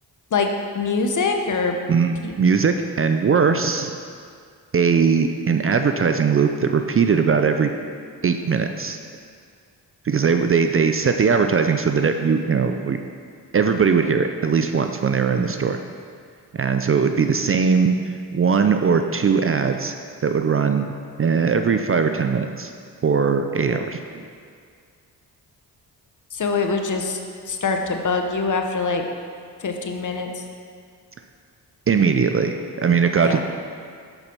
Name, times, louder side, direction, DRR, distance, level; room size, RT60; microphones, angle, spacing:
voice 1, 0.7-1.8 2.2-2.3 26.3-27.2 27.5-29.0 29.6-30.4 33.2-33.4, left 4 dB, 45° left, 4 dB, 0.9 m, -23 dB
voice 2, 1.9-4.0 4.7-7.7 8.2-9.0 10.0-13.0 13.5-15.8 16.5-20.0 20.2-20.9 21.2-22.7 23.0-24.0 31.9-33.4, right 5 dB, 35° right, 7 dB, 0.5 m, -20 dB
5.9 x 5.7 x 5.3 m, 2.2 s
supercardioid pair, 55°, 41 cm